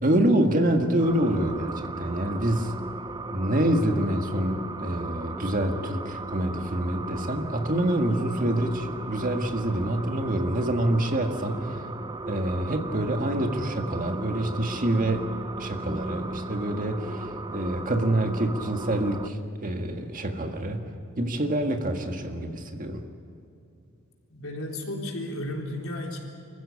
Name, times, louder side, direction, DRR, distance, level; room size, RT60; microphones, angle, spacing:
voice 1, 0.0-2.7 3.3-11.8 12.3-15.3 15.6-20.8 21.2-23.0, right 1 dB, 40° right, 5 dB, 1.8 m, -26 dB
sound 1, 1.0-19.3, right 2 dB, 20° right, 0.5 m, -37 dB
voice 2, 24.3-26.2, left 1 dB, 75° left, 0 dB, 3.8 m, -33 dB
25.5 x 15.5 x 9.6 m, 2.6 s
head